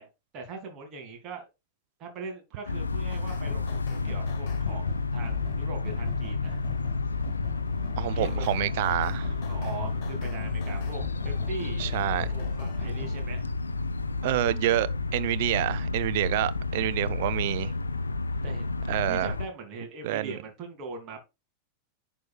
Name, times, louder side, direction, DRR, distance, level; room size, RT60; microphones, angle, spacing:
voice 1, 0.0-1.5 2.0-6.6 8.1-8.4 9.5-11.9 12.3-13.5 18.4-18.7 19.1-21.2, right 4 dB, 35° right, 2.6 m, -41 dB
sound 1, 2.7-19.5, left 3 dB, 75° left, 0.5 m, -31 dB
sound 2, 3.1-13.2, left 4 dB, 40° left, 1.9 m, -41 dB
voice 2, 8.0-9.3 11.8-12.3 14.2-17.7 18.9-19.3 20.0-20.4, right 15 dB, 50° right, 0.5 m, -28 dB
10.5 x 4.5 x 2.3 m
figure-of-eight pair, 90°, 0 cm